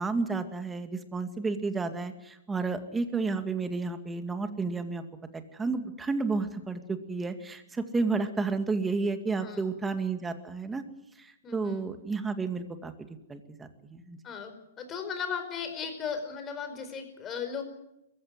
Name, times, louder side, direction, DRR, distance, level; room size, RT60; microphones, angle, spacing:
voice 1, 0.0-5.0 5.3-10.8 11.2-14.2, right 4 dB, 10° right, 8 dB, 2.2 m, -31 dB
voice 2, 9.4-9.8 11.4-11.9 14.2-17.6, left 6 dB, 25° left, 7 dB, 5.0 m, -36 dB
22.0 x 15.5 x 9.5 m, 0.88 s
hypercardioid pair, 120°, 0 cm